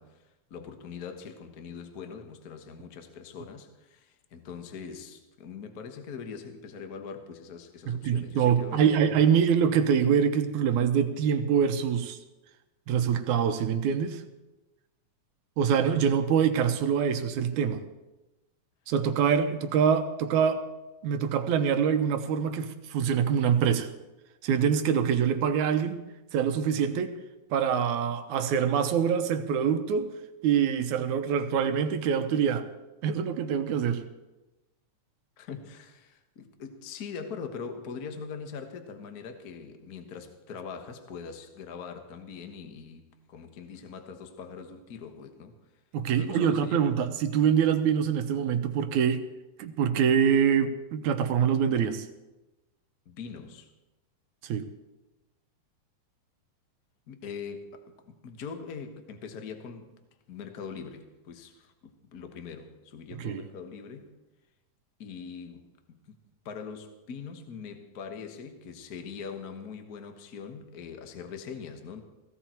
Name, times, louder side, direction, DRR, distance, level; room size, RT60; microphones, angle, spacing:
voice 1, 0.0-9.2 35.4-45.6 46.1-46.9 53.0-53.7 57.1-60.0 60.3-64.1 65.0-66.1 66.4-72.0, left 6 dB, 50° left, 1.1 m, -42 dB
voice 2, 7.9-12.2 12.9-14.2 15.6-17.8 18.9-20.7 21.0-23.9 24.4-26.0 26.3-27.1 27.5-30.1 30.4-32.7 33.0-34.1 45.9-49.2 49.6-52.1 54.4-54.7 63.2-63.4, right 7 dB, 75° right, 2.2 m, -25 dB
17.0 x 16.5 x 4.5 m
omnidirectional pair, 3.7 m